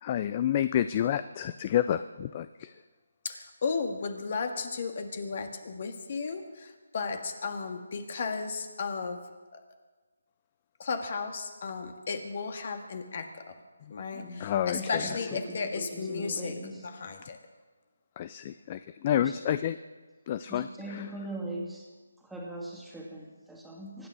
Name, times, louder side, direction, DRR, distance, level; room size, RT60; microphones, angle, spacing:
voice 1, 0.0-2.7 14.4-15.1 18.2-19.8 20.3-21.0, left 10 dB, 30° left, 13 dB, 0.4 m, -29 dB
voice 2, 3.2-9.2 9.5-9.6 10.8-13.5 13.9-16.5 16.8-17.4, left 4 dB, 45° left, 6 dB, 1.8 m, -34 dB
voice 3, 14.7-16.9 19.2-19.4 20.5-21.9 22.2-24.1, right 1 dB, ahead, -3 dB, 2.4 m, -40 dB
24.0 x 9.6 x 6.2 m, 1.3 s
figure-of-eight pair, 155°, 0 cm